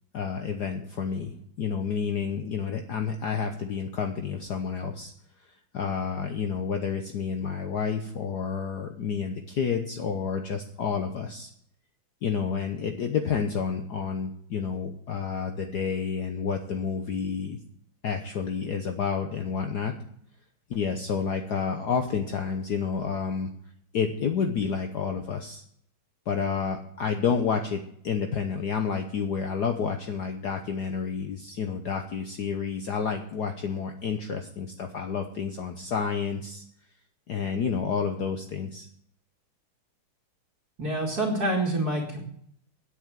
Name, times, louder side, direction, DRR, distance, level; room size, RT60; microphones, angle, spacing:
voice 1, 0.1-5.1 5.7-11.5 12.2-17.6 18.0-19.9 20.7-23.5 23.9-25.6 26.3-36.6 37.3-38.9, left 6 dB, 60° left, 5 dB, 1.4 m, -30 dB
voice 2, 40.8-42.2, right 1 dB, 45° right, -5 dB, 2.9 m, -27 dB
9.9 x 8.5 x 7.6 m, 0.67 s
omnidirectional pair, 2.3 m